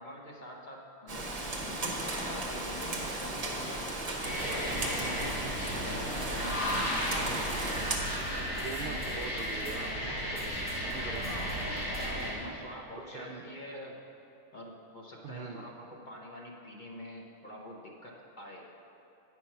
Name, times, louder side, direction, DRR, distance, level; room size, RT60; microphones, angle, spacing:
voice 1, 0.0-3.9 4.4-5.5 5.9-9.6 11.9-14.0 14.5-18.7, equal, 40° left, -2 dB, 0.9 m, -46 dB
Rain, 1.1-8.0, right 2 dB, 35° right, 0.8 m, -35 dB
sound 1, 4.2-12.4, equal, 75° left, 2.1 m, -34 dB
sound 2, 4.4-12.4, right 1 dB, 10° right, 1.5 m, -50 dB
voice 2, 6.7-7.1 8.6-11.9 13.0-13.4 15.2-15.6, right 5 dB, 70° right, 2 dB, 0.5 m, -43 dB
9.2 x 4.6 x 5.7 m, 2.8 s
omnidirectional pair, 1.4 m